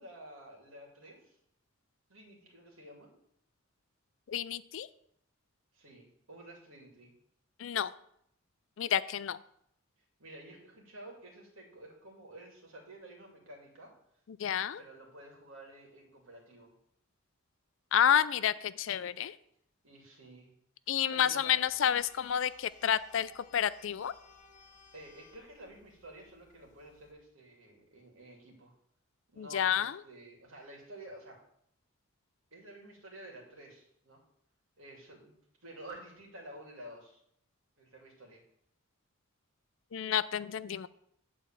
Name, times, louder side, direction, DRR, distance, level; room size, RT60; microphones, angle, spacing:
voice 1, 0.0-1.3 2.1-3.1 5.7-7.1 10.2-13.9 14.8-16.7 19.8-20.5 21.1-21.7 24.9-28.7 29.3-31.4 32.5-34.2 34.8-37.2 37.8-38.4, right 1 dB, 75° right, -1 dB, 2.6 m, -51 dB
voice 2, 4.3-4.9 7.6-7.9 8.8-9.4 14.3-14.8 17.9-19.3 20.9-24.1 29.4-30.0 39.9-40.9, left 9 dB, 65° left, 16 dB, 0.4 m, -30 dB
sound 1, 21.7-27.1, left 5 dB, 40° left, 0.8 m, -61 dB
9.2 x 4.2 x 7.4 m, 0.71 s
head